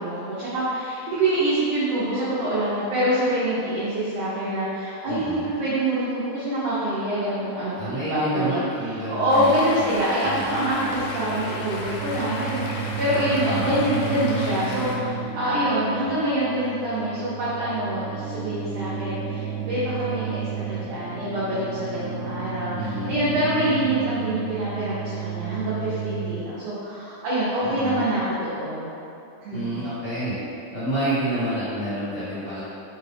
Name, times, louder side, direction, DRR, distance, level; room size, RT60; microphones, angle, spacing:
voice 1, 0.0-8.6 8.8-28.9 29.4-29.9, right 1 dB, 75° right, -10 dB, 1.5 m, -25 dB
voice 2, 5.0-5.5 7.8-10.0 10.2-10.9 13.5-13.8 22.7-23.4 27.6-28.1 29.5-30.4 30.7-32.6, right 1 dB, 75° left, -13 dB, 1.2 m, -29 dB
Stream, 9.3-15.0, left 2 dB, 90° left, 1.5 m, -35 dB
sound 1, 10.2-26.4, right 6 dB, 55° right, 1.9 m, -32 dB
5.5 x 2.3 x 3.3 m, 2.7 s
omnidirectional pair, 3.6 m